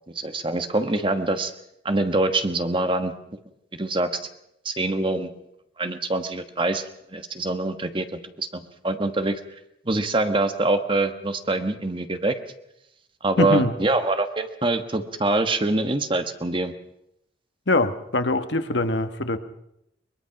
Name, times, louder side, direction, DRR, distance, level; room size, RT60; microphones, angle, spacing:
voice 1, 0.1-1.5 1.8-3.1 3.7-4.1 4.6-5.3 5.8-6.8 7.1-9.4 9.8-12.4 13.2-16.7, right 2 dB, 30° right, 8 dB, 1.3 m, -24 dB
voice 2, 13.4-13.7 17.7-19.4, left 2 dB, 75° left, 9 dB, 1.4 m, -23 dB
22.5 x 21.5 x 5.9 m, 0.80 s
head